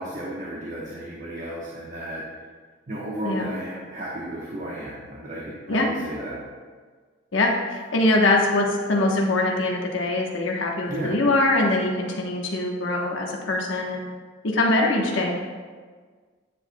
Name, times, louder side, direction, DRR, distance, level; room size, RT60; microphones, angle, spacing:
voice 1, 0.0-2.2 2.9-6.4 10.9-11.2, right 1 dB, 45° right, -5 dB, 1.0 m, -33 dB
voice 2, 7.3-14.0 14.4-15.4, left 2 dB, 85° left, -1 dB, 1.0 m, -23 dB
9.6 x 7.7 x 2.2 m, 1.5 s
head